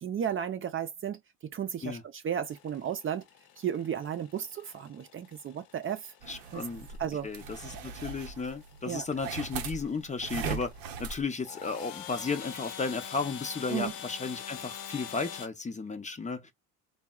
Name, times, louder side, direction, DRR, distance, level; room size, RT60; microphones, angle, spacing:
voice 1, 0.0-1.2 1.5-2.0 2.2-3.2 3.6-6.1 6.5-6.6 7.0-7.3 8.9-9.1 13.7-13.9, right 9 dB, 40° right, 0.5 m, -33 dB
sound 1, 2.4-15.5, left 8 dB, 80° left, 0.7 m, -46 dB
sound 2, 6.2-11.2, right 6 dB, 85° right, 0.6 m, -40 dB
voice 2, 6.3-7.0 7.2-10.7 11.0-16.5, left 4 dB, 20° left, 0.6 m, -34 dB
3.5 x 2.1 x 2.3 m
supercardioid pair, 90°, 34 cm